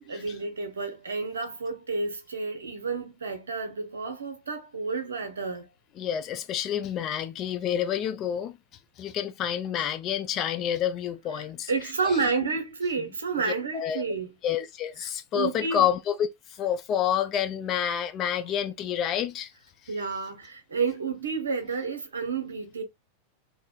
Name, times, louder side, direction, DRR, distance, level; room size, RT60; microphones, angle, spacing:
voice 1, 0.0-5.7 11.4-14.3 15.0-15.9 19.9-22.8, right 4 dB, 70° right, 0.7 m, -30 dB
voice 2, 6.0-8.6 9.0-11.7 12.1-12.2 13.5-14.0 14.4-16.2 16.5-19.5, left 9 dB, 35° left, 0.5 m, -28 dB
3.3 x 2.1 x 2.2 m
figure-of-eight pair, 90°, 0 cm